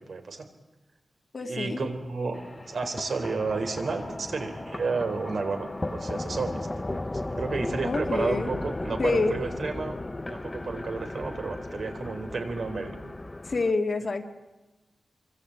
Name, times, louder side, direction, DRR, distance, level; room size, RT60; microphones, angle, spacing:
voice 1, 0.1-0.5 1.5-2.4 2.7-7.0 7.3-10.0 10.3-13.1, right 4 dB, 60° right, 5 dB, 3.9 m, -32 dB
voice 2, 1.3-1.9 7.8-8.5 9.0-9.4 13.5-14.3, left 3 dB, 40° left, 5 dB, 2.2 m, -27 dB
sound 1, 2.3-13.7, left 2 dB, 20° left, 0.9 m, -35 dB
27.0 x 24.5 x 8.8 m, 1.1 s
wide cardioid pair, 170°, 0 cm